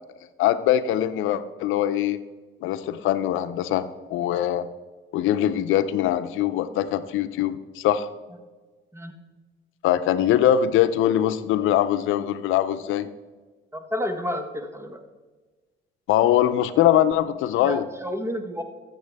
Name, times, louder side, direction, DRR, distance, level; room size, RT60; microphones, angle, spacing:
voice 1, 0.4-2.2 2.6-4.7 5.1-8.1 9.8-13.1 16.1-17.9, left 11 dB, 90° left, 12 dB, 0.6 m, -22 dB
voice 2, 13.7-15.0 17.6-18.6, left 1 dB, 15° right, 6 dB, 1.3 m, -30 dB
13.0 x 8.0 x 3.5 m, 1.3 s
cardioid pair, 90°, 20 cm